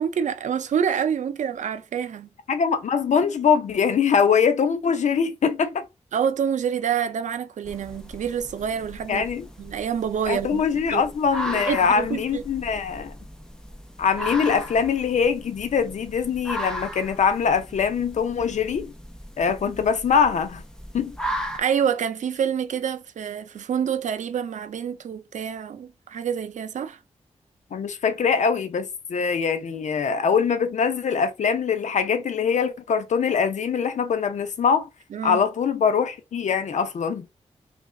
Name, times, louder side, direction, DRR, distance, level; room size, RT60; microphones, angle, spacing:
voice 1, 0.0-2.3 6.1-9.3 9.6-10.6 10.9-11.0 11.5-12.4 19.7-19.8 21.5-27.0 35.1-35.4, right 8 dB, 80° right, 0.5 m, -27 dB
voice 2, 2.5-5.8 9.1-9.5 10.3-13.1 14.0-18.9 19.4-20.6 20.9-21.2 27.7-34.9 35.2-37.3, left 6 dB, 80° left, 0.6 m, -23 dB
sound 1, 7.6-21.6, equal, 5° left, 0.7 m, -36 dB
3.1 x 2.4 x 3.6 m
wide cardioid pair, 125°, 12 cm